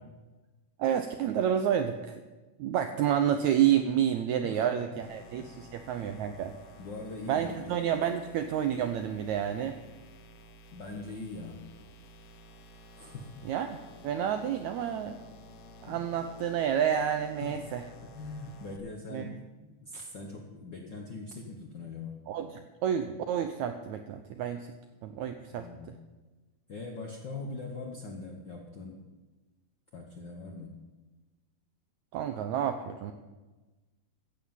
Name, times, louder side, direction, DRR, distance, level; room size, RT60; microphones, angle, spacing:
voice 1, 0.8-2.2 2.6-6.5 7.3-9.8 13.4-13.8 14.0-15.2 15.8-17.8 19.1-19.3 22.3-24.7 25.0-25.7 32.1-33.1, right 9 dB, 85° right, 8 dB, 1.6 m, -29 dB
sound 1, 5.0-18.8, equal, 70° left, 1.4 m, -52 dB
voice 2, 6.8-7.7 10.7-11.6 13.0-13.4 15.9-16.0 17.4-17.7 18.0-19.3 19.6-22.2 25.5-26.0 26.7-29.0 29.9-30.8, left 3 dB, 90° left, 1 dB, 0.9 m, -42 dB
14.5 x 7.9 x 7.2 m, 1.2 s
omnidirectional pair, 4.1 m